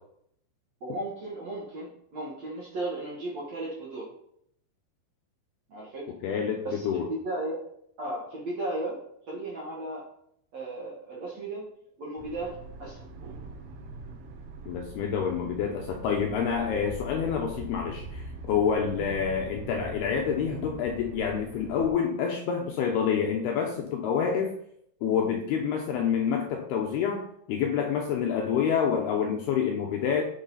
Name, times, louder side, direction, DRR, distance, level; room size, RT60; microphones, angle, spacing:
voice 1, 0.8-4.1 5.7-6.1 6.6-7.6 8.0-9.0 9.3-10.1 10.5-11.7 12.0-13.1, right 2 dB, 55° right, -4 dB, 2.0 m, -35 dB
voice 2, 6.2-7.1 14.7-24.5 25.0-30.2, left 7 dB, 75° left, 2 dB, 2.4 m, -27 dB
sound 1, 12.2-21.9, right 2 dB, 70° right, 2.8 m, -42 dB
10.5 x 6.1 x 4.1 m, 0.71 s
omnidirectional pair, 5.4 m